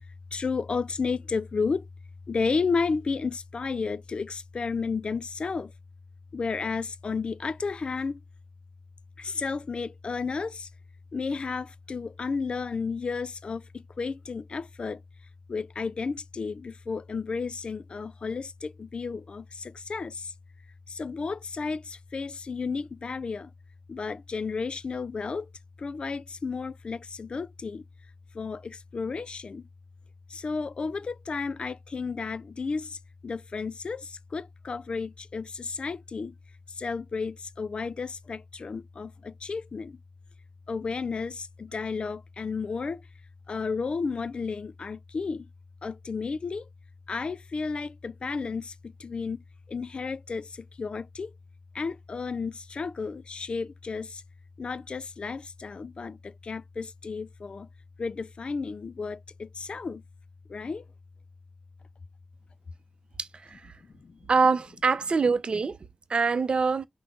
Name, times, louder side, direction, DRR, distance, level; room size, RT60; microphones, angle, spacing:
voice 1, 0.3-1.9 2.3-5.7 6.3-8.2 9.2-10.7 11.1-15.0 15.5-20.3 20.9-23.5 23.9-25.5 25.8-27.8 28.3-29.6 30.3-33.0 33.2-36.3 36.8-40.0 40.7-43.0 43.5-45.5 45.8-46.7 47.1-48.7 49.0-49.4 49.7-51.3 51.7-54.2 54.6-57.7 58.0-60.0 60.5-60.8, left 4 dB, 55° left, 0.3 m, -32 dB
voice 2, 63.2-63.6 64.3-65.8 66.1-66.9, right 4 dB, 55° right, 0.6 m, -24 dB
5.8 x 2.1 x 3.6 m
wide cardioid pair, 80°, 2 cm